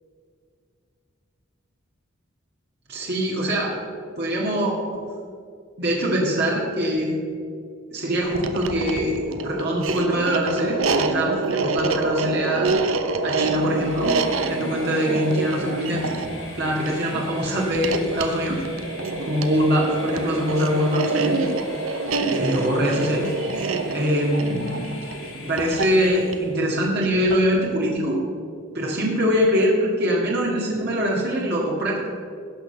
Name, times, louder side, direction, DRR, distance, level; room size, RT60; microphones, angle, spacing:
voice 1, 2.9-3.7 4.2-5.0 5.8-7.1 7.9-12.7 13.2-16.1 16.6-18.6 19.2-21.4 22.3-23.3 23.9-24.9 25.3-28.2 28.7-32.1, equal, 55° right, -3 dB, 2.1 m, -23 dB
sound 1, 8.2-27.5, right 3 dB, 90° right, 0.9 m, -27 dB
Train, 13.2-26.7, left 2 dB, 85° left, 3.2 m, -42 dB
17.0 x 6.4 x 6.8 m, 2.3 s
head